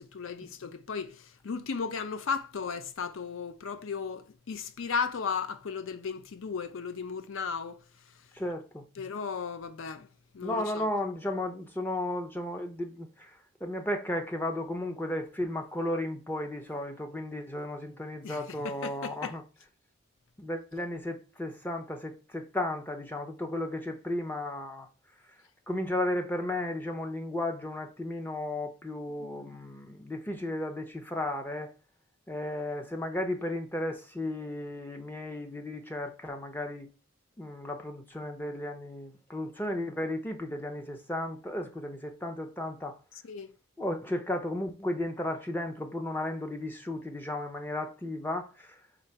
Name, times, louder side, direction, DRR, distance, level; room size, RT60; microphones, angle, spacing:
voice 1, 0.0-7.8 9.0-10.1 10.3-10.9 18.2-19.3 29.2-29.5 43.2-43.5, left 5 dB, 70° left, 0.5 m, -35 dB
voice 2, 8.3-8.8 10.4-19.4 20.4-24.9 25.7-31.7 32.3-36.9 37.4-43.0 43.8-48.8, left 1 dB, 10° left, 0.4 m, -34 dB
3.7 x 3.0 x 4.4 m
head